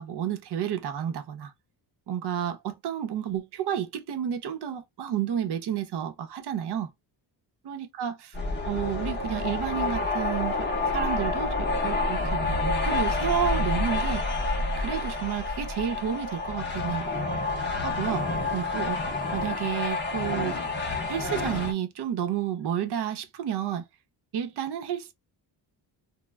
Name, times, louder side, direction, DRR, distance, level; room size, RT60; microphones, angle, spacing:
voice 1, 0.0-1.5 2.1-6.9 7.6-8.1 8.7-10.7 10.9-14.4 14.8-17.0 17.8-18.3 18.5-19.0 19.3-20.6 21.0-23.9 24.3-25.1, right 9 dB, 65° right, 0.7 m, -31 dB
sound 1, 8.3-21.7, left 3 dB, 25° left, 0.6 m, -28 dB
2.1 x 2.0 x 3.3 m
cardioid pair, 130°, 42 cm